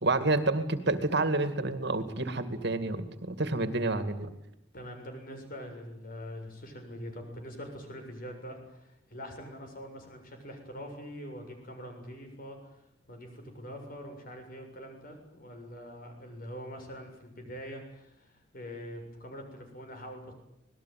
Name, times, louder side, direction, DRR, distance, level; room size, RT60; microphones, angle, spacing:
voice 1, 0.0-4.3, right 2 dB, 60° right, 10 dB, 2.3 m, -29 dB
voice 2, 4.7-12.8 13.1-20.3, equal, 50° left, 5 dB, 7.1 m, -44 dB
26.0 x 20.0 x 9.3 m, 0.80 s
head